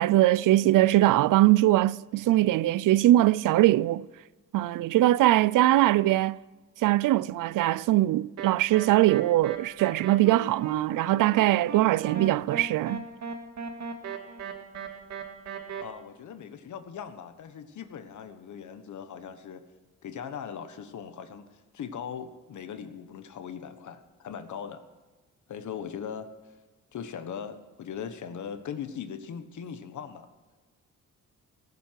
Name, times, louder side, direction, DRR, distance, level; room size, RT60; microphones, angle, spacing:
voice 1, 0.0-4.1 4.5-6.4 6.8-13.0, right 15 dB, 75° right, 0.5 m, -22 dB
sound 1, 8.4-15.8, right 5 dB, 55° right, 2.4 m, -37 dB
voice 2, 15.8-19.6 20.0-21.5 21.7-24.8 25.5-26.3 26.9-30.3, left 7 dB, 65° left, 1.4 m, -39 dB
16.5 x 15.0 x 4.7 m
cardioid pair, 130°, 32 cm